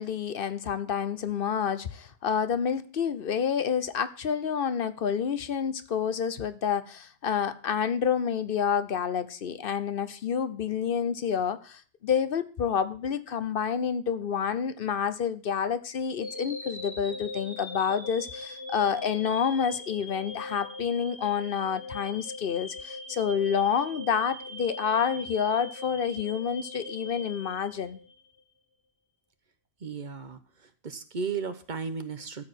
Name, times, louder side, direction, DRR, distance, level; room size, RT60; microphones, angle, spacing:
voice 1, 0.0-28.0, left 7 dB, 60° left, 13 dB, 0.9 m, -28 dB
sound 1, 16.2-28.3, left 2 dB, 30° left, 2.4 m, -40 dB
voice 2, 29.8-30.4 30.8-32.4, right 5 dB, 50° right, 10 dB, 1.1 m, -34 dB
13.0 x 4.8 x 8.0 m, 0.40 s
omnidirectional pair, 1.1 m